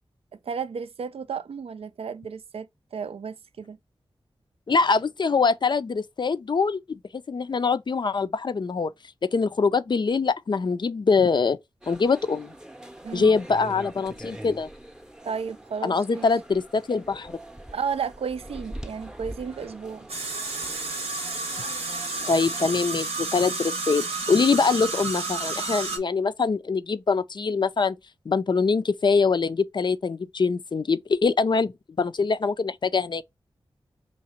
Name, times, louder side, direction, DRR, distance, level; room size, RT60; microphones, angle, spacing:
voice 1, 0.4-3.8 13.0-13.3 15.2-16.3 17.7-20.1, right 6 dB, 75° right, 0.4 m, -33 dB
voice 2, 4.7-8.9 9.2-11.6 11.9-12.5 13.1-14.7 15.8-17.4 22.3-28.0 28.3-33.2, left 4 dB, 50° left, 0.4 m, -24 dB
sound 1, 11.8-22.9, right 1 dB, 5° right, 0.6 m, -43 dB
sound 2, 20.1-26.0, right 3 dB, 90° right, 0.9 m, -31 dB
2.9 x 2.8 x 4.3 m
cardioid pair, 40°, 10 cm